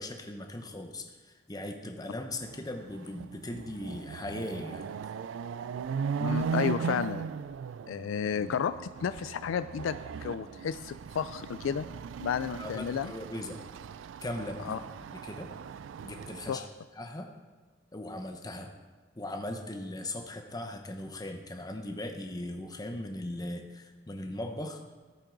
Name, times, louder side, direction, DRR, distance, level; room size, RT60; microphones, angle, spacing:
voice 1, 0.0-4.9 12.6-13.6 14.2-14.8 15.1-15.5 16.0-16.6 17.0-17.3 17.9-18.7 19.2-24.8, left 1 dB, 20° left, 5 dB, 0.9 m, -39 dB
Chatter / Car passing by / Motorcycle, 2.5-2.6 3.0-16.5, right 6 dB, 70° right, 0.3 m, -38 dB
voice 2, 6.2-7.2 7.9-11.8 12.2-13.1 14.6-14.8 16.5-16.7, left 7 dB, 80° left, 13 dB, 0.3 m, -32 dB
14.0 x 7.5 x 3.9 m, 1.4 s
head